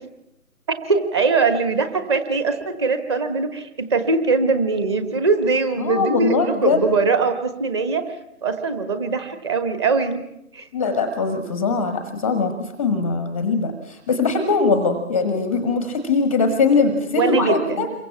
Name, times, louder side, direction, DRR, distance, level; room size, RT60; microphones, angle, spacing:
voice 1, 0.9-8.1 8.4-10.2 10.5-10.7 17.1-17.9, right 4 dB, 20° right, 9 dB, 1.3 m, -21 dB
voice 2, 5.8-6.8 10.7-12.5 12.8-17.9, left 4 dB, 10° left, 7 dB, 1.0 m, -21 dB
27.5 x 23.0 x 7.2 m, 0.78 s
figure-of-eight pair, 155°, 44 cm